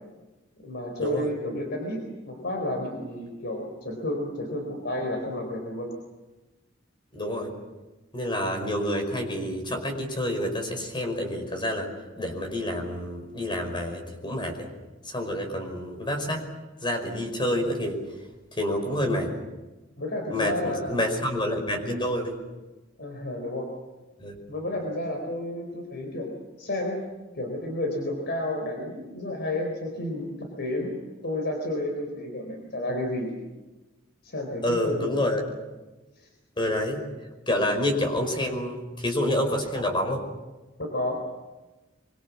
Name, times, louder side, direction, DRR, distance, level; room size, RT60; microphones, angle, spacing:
voice 1, 0.6-5.9 15.5-15.6 20.0-21.0 23.0-23.7 24.5-26.3 26.6-27.0 27.3-30.9 31.2-33.3 34.2-35.0 36.2-36.3 40.8-41.2, left 1 dB, 60° left, 2 dB, 4.2 m, -31 dB
voice 2, 7.1-7.5 8.1-11.9 12.2-14.7 15.1-16.5 16.8-18.0 18.5-19.3 20.3-22.4 24.2-24.4 34.6-35.6 36.6-37.0 37.5-40.2, left 1 dB, 25° left, 5 dB, 5.2 m, -28 dB
25.0 x 25.0 x 7.3 m, 1.1 s
head